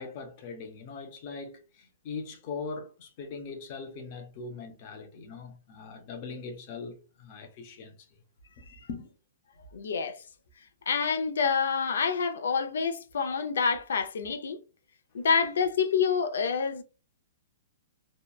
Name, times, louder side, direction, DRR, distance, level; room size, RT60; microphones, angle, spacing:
voice 1, 0.0-8.2 8.9-9.1, left 4 dB, 30° left, 0.5 m, -41 dB
voice 2, 9.7-10.2 10.9-14.6 15.1-16.8, left 6 dB, 85° left, 0.5 m, -27 dB
2.8 x 2.1 x 2.3 m
hypercardioid pair, 180°, 0 cm